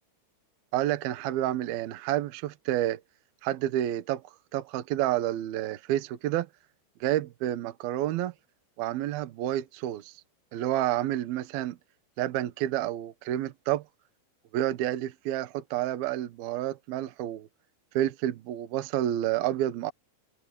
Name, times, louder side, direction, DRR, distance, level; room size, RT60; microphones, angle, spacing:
voice 1, 0.7-3.0 3.4-4.2 4.5-6.5 7.0-8.3 8.8-10.1 10.5-11.8 12.2-13.8 14.5-17.5 17.9-19.9, right 13 dB, 70° right, 2.3 m, -29 dB
omnidirectional pair, 5.8 m